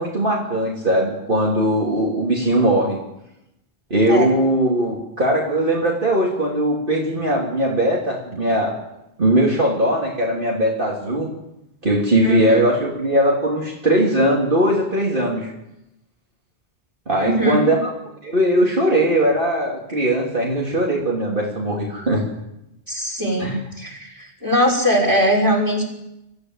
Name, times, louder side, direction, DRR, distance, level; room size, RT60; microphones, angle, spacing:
voice 1, 0.0-3.0 3.9-8.7 9.2-11.3 11.8-15.5 17.1-17.9 18.2-22.2 23.4-23.6, right 1 dB, 50° right, -3 dB, 3.3 m, -19 dB
voice 2, 12.2-12.6 17.2-17.6 22.9-25.8, equal, 20° right, -1 dB, 6.0 m, -20 dB
24.0 x 14.5 x 8.0 m, 0.88 s
omnidirectional pair, 1.1 m